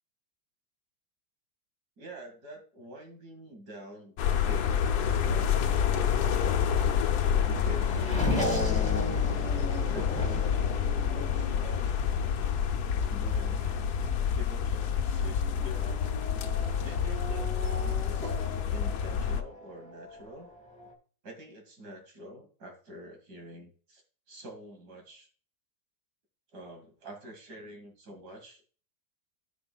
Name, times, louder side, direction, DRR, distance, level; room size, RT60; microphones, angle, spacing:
voice 1, 2.0-6.9 7.5-8.9 9.9-10.4 11.1-12.1 13.1-13.9 14.3-16.0 16.8-18.4 18.7-20.5 21.2-25.3 26.5-28.6, equal, 85° right, 3 dB, 2.6 m, -47 dB
sound 1, 4.2-19.4, left 8 dB, 80° left, 1.3 m, -28 dB
Race car auto racing / Accelerating revving vroom, 5.1-20.9, left 1 dB, 5° left, 1.4 m, -38 dB
13.5 x 5.1 x 2.3 m, 0.42 s
omnidirectional pair, 1.7 m